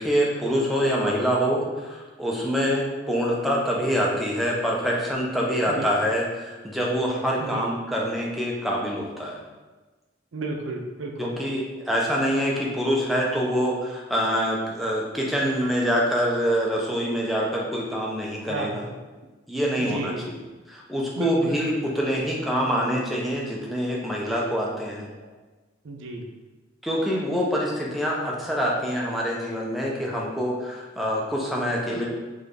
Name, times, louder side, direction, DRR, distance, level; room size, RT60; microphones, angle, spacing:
voice 1, 0.0-9.4 11.2-18.8 19.5-20.4 20.7-25.1 26.8-32.1, equal, ahead, -4 dB, 0.6 m, -25 dB
voice 2, 7.4-7.7 10.3-11.3 18.5-18.9 19.8-20.3 21.2-21.6 25.2-25.3 25.8-26.3 31.9-32.1, right 3 dB, 80° right, 2 dB, 0.5 m, -32 dB
3.4 x 3.3 x 3.9 m, 1.2 s
head